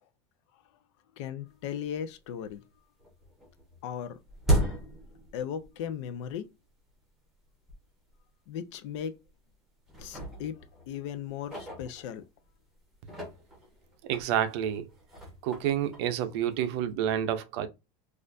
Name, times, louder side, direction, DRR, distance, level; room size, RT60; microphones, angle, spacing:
voice 1, 1.2-2.6 3.8-4.2 5.3-6.5 8.5-9.1 10.0-10.5 10.9-12.2, left 8 dB, 65° left, 0.5 m, -36 dB
sound 1, 1.7-1.8 2.1-2.7 3.0-5.9 6.2-6.3 7.1-7.2 7.7-7.8 8.1-8.3 9.0-9.5 9.9-12.5 12.9-16.8, right 1 dB, ahead, 1.1 m, -35 dB
voice 2, 14.1-14.9 15.4-17.7, right 10 dB, 55° right, 0.5 m, -29 dB
4.2 x 2.5 x 2.5 m
supercardioid pair, 175°, 16 cm